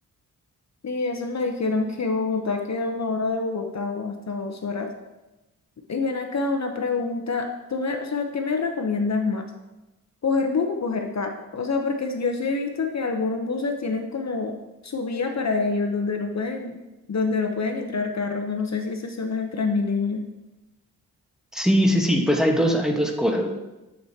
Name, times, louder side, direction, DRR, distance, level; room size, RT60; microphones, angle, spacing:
voice 1, 0.8-4.9 5.9-9.4 10.2-14.6 14.8-16.8 17.1-20.2, left 4 dB, 45° left, 4 dB, 0.8 m, -26 dB
voice 2, 21.5-23.5, equal, ahead, 1 dB, 1.2 m, -21 dB
7.6 x 7.3 x 2.8 m, 1.0 s
cardioid pair, 65°, 37 cm